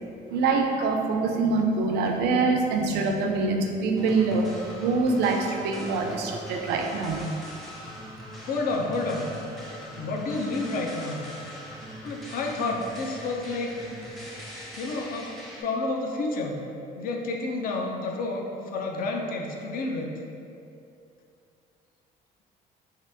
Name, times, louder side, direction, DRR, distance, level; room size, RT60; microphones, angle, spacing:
voice 1, 0.3-7.2, right 3 dB, 75° right, 3 dB, 0.4 m, -25 dB
sound 1, 3.9-15.6, equal, ahead, 0.5 m, -41 dB
voice 2, 8.4-9.3 10.0-11.3 12.0-13.7 14.8-16.6 17.0-20.1, left 2 dB, 60° left, 1 dB, 0.4 m, -30 dB
2.7 x 2.4 x 3.3 m, 2.5 s
cardioid pair, 110°, 17 cm